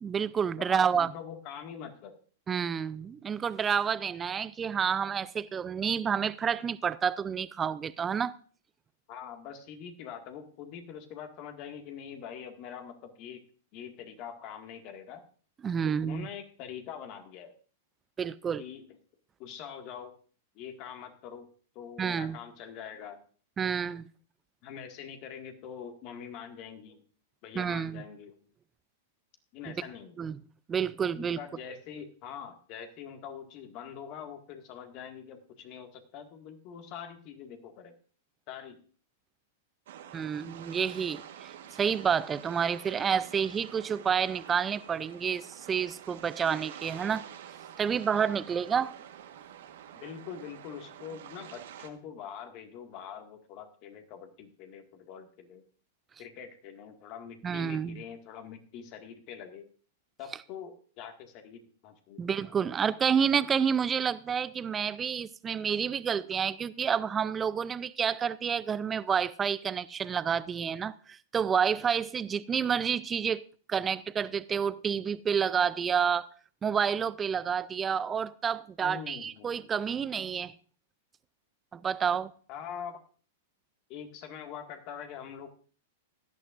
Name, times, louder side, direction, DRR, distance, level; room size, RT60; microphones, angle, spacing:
voice 1, 0.0-1.1 2.5-8.3 15.6-16.3 18.2-18.6 22.0-22.4 23.6-24.1 27.6-28.0 29.7-29.8 30.2-30.4 30.7-31.4 40.1-41.5 41.8-47.2 47.8-48.9 57.4-58.0 62.2-76.3 76.6-80.5 81.7-82.3, right 7 dB, 20° right, 0.6 m, -29 dB
voice 2, 0.6-2.2 9.1-13.4 13.7-15.2 15.8-17.5 18.6-18.9 19.4-20.1 20.5-21.5 21.8-23.2 24.6-27.0 27.4-28.5 29.5-30.2 31.1-38.0 38.5-38.8 49.9-55.6 56.2-59.7 60.2-62.5 78.8-79.6 82.5-83.0 83.9-85.5, left 8 dB, 45° left, 1.9 m, -44 dB
sound 1, 39.9-51.9, right 10 dB, 65° right, 1.4 m, -48 dB
17.0 x 11.5 x 2.5 m
hypercardioid pair, 105°, 0 cm